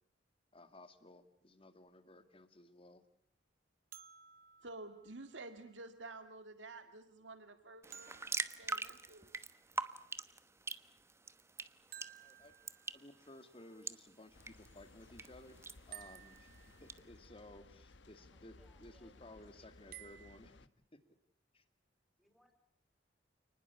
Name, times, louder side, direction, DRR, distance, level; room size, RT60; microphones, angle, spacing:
voice 1, 0.5-3.0 12.2-12.5 12.9-15.6 15.9-20.5 20.9-21.0 21.5-21.6, left 1 dB, 30° left, 10 dB, 2.3 m, -57 dB
sound 1, 3.9-5.9 7.9-9.7 11.9-13.3 15.9-17.2 19.9-20.4, right 10 dB, 55° right, 1.4 m, -57 dB
voice 2, 4.6-9.3, right 2 dB, 85° right, 8 dB, 2.0 m, -51 dB
sound 2, 7.8-17.0, right 3 dB, 15° right, 1.1 m, -45 dB
sound 3, 14.3-20.7, left 2 dB, 75° left, 1.1 m, -61 dB
voice 3, 18.2-20.5 22.2-22.5, equal, ahead, 5 dB, 5.3 m, -71 dB
29.0 x 20.0 x 8.4 m, 0.69 s
head